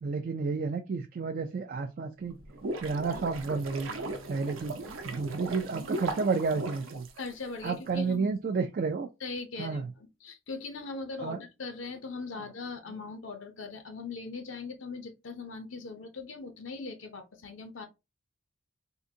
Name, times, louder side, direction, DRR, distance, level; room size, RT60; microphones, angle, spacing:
voice 1, 0.0-2.4 2.8-3.9 4.3-4.8 5.0-7.1 7.6-9.1 9.6-9.9 11.2-11.4, right 4 dB, 45° right, 0.3 m, -31 dB
sound 1, 2.3-7.7, right 2 dB, 70° right, 0.7 m, -38 dB
voice 2, 7.2-8.3 9.2-17.9, left 4 dB, 65° left, 0.6 m, -40 dB
3.7 x 2.5 x 2.7 m
head